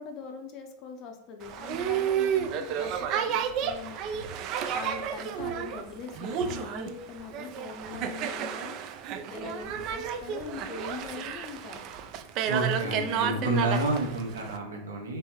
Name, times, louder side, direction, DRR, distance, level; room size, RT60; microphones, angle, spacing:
voice 1, 0.0-9.0 9.3-11.9 12.7-13.5, left 6 dB, 35° left, 4 dB, 0.6 m, -42 dB
Boat Water vehicle, 1.4-14.6, right 8 dB, 40° right, 0.3 m, -31 dB
Walk footsteps, 1.7-2.1 2.4-2.7 3.0-3.3 3.6-3.9 4.1-5.1 5.3-5.7 6.0-6.1 6.3-6.9 7.4-7.5 7.9-8.1, right 1 dB, 75° left, 0.6 m, -47 dB
voice 2, 12.5-15.2, right 2 dB, 70° right, 0 dB, 0.9 m, -29 dB
3.4 x 3.2 x 3.0 m, 0.75 s
figure-of-eight pair, 90°, 0 cm